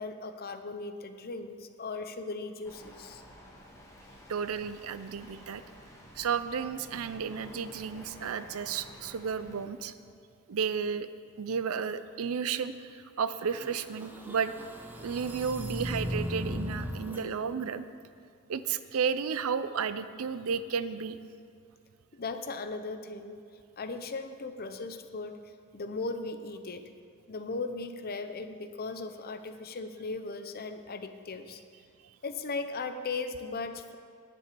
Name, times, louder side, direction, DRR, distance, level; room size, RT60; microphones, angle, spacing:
voice 1, 0.0-3.2 22.1-23.4 23.8-25.3 25.7-26.8 27.3-31.6 32.2-34.0, left 3 dB, 45° left, 8 dB, 0.7 m, -37 dB
sound 1, 2.6-9.7, equal, 15° left, 1.7 m, -51 dB
voice 2, 4.3-5.6 6.2-9.9 10.5-11.1 11.4-14.5 15.0-17.8 18.5-21.2, right 6 dB, 70° right, 13 dB, 0.5 m, -32 dB
sound 2, 13.5-17.2, equal, 10° right, 0.9 m, -37 dB
10.0 x 7.9 x 6.8 m, 2.3 s
head